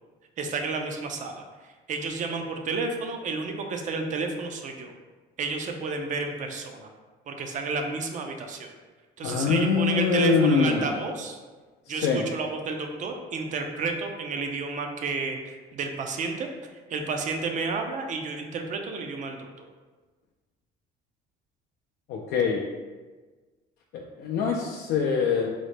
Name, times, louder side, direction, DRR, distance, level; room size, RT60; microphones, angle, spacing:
voice 1, 0.4-1.4 1.9-4.9 5.4-6.9 7.3-8.7 9.2-11.4 11.9-16.5 16.9-19.7, right 4 dB, 50° right, 4 dB, 0.5 m, -31 dB
voice 2, 9.2-11.0 11.9-12.3 22.1-22.6 23.9-25.5, left 5 dB, 75° left, -1 dB, 0.4 m, -24 dB
3.8 x 2.1 x 3.2 m, 1.3 s
cardioid pair, 110°, 17 cm